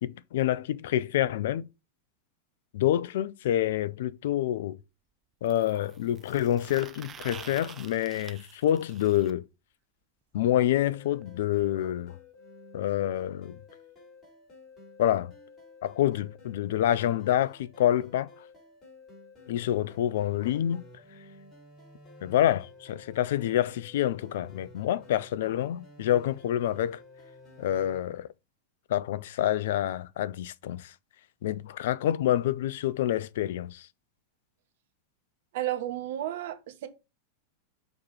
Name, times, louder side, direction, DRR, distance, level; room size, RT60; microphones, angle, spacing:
voice 1, 0.0-1.7 2.7-4.8 5.4-9.5 10.3-12.2 12.7-13.6 15.0-15.3 15.8-18.3 19.5-20.8 22.2-27.0 27.6-28.3 28.9-30.9 31.4-33.9, left 12 dB, 55° left, 0.3 m, -27 dB
sound 1, 3.4-3.5 5.5-9.3 11.2-11.3 11.6-11.7 12.0-12.1 13.0-13.1, right 7 dB, 25° right, 0.4 m, -48 dB
sound 2, 10.7-28.0, left 2 dB, 20° left, 3.1 m, -52 dB
voice 2, 35.5-36.9, right 13 dB, 55° right, 0.9 m, -32 dB
6.5 x 3.0 x 5.4 m
figure-of-eight pair, 90°, 0 cm